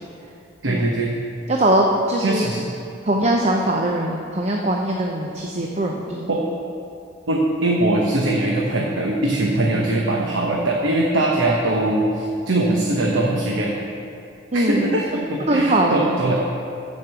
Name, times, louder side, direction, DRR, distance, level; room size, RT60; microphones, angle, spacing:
voice 1, 0.6-1.1 2.2-2.7 6.3-6.4 7.3-13.7 14.5-16.4, right 2 dB, 70° right, -2 dB, 1.0 m, -21 dB
voice 2, 1.5-2.5 3.0-6.3 14.5-14.9 15.5-16.1, right 1 dB, 35° right, 0 dB, 0.6 m, -21 dB
12.5 x 5.3 x 6.9 m, 2.6 s
head